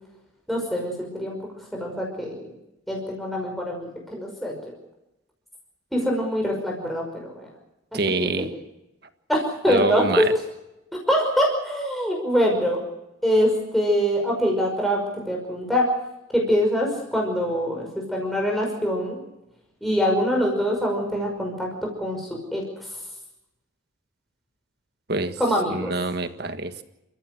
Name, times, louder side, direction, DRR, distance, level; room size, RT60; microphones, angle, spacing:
voice 1, 0.5-1.4 1.7-2.5 2.9-4.7 5.9-7.5 7.9-8.5 9.3-10.3 11.1-12.8 13.2-15.0 15.3-15.8 16.3-19.2 19.8-21.7 22.0-22.6 25.4-25.9, equal, ahead, -1 dB, 5.5 m, -24 dB
voice 2, 7.9-8.5 9.7-10.3 25.1-25.4 25.7-26.8, right 2 dB, 50° right, 9 dB, 1.6 m, -26 dB
29.5 x 14.5 x 7.8 m, 0.92 s
head